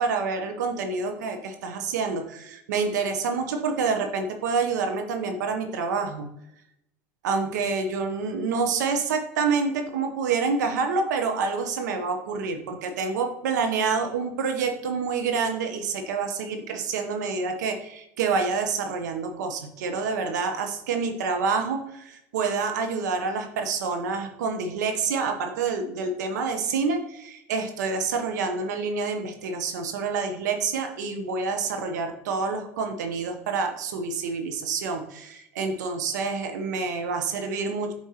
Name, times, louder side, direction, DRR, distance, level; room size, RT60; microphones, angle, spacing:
voice 1, 0.0-6.3 7.2-37.9, right 4 dB, 85° right, 5 dB, 0.8 m, -27 dB
7.4 x 4.5 x 2.8 m, 0.82 s
hypercardioid pair, 85°, 9 cm